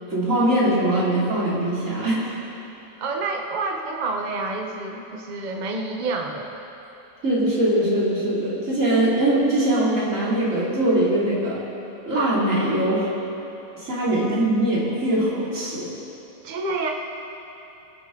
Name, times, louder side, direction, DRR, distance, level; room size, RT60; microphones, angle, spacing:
voice 1, 0.1-2.4 7.2-11.6 12.1-13.1 13.8-15.9, right 1 dB, 40° right, -7 dB, 3.0 m, -22 dB
voice 2, 3.0-6.5 14.2-14.4 16.4-16.9, right 3 dB, 55° right, 1 dB, 0.5 m, -28 dB
24.0 x 8.0 x 3.7 m, 3.0 s
omnidirectional pair, 2.2 m